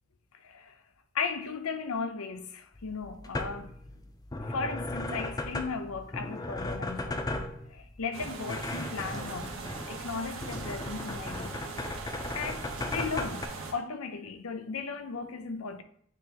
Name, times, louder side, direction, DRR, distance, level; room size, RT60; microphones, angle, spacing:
voice 1, 0.4-0.8 1.1-3.7 4.5-11.5 11.9-12.0 12.3-15.8, left 5 dB, 90° left, 0.6 m, -36 dB
sound 1, 2.8-13.5, left 2 dB, 20° left, 0.4 m, -37 dB
sound 2, 8.1-13.7, right 4 dB, 65° right, 1.2 m, -41 dB
9.1 x 3.8 x 2.9 m
head